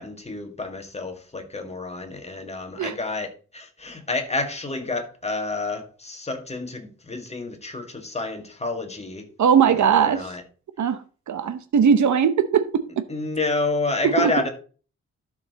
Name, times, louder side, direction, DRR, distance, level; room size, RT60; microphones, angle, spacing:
voice 1, 0.0-9.3 9.7-10.4 13.1-14.5, left 3 dB, 20° left, 5 dB, 1.8 m, -29 dB
voice 2, 9.4-10.2 10.8-11.0 11.3-12.8 14.2-14.3, right 7 dB, 75° right, 9 dB, 1.0 m, -19 dB
12.0 x 6.6 x 4.1 m, 0.38 s
wide cardioid pair, 145°, 29 cm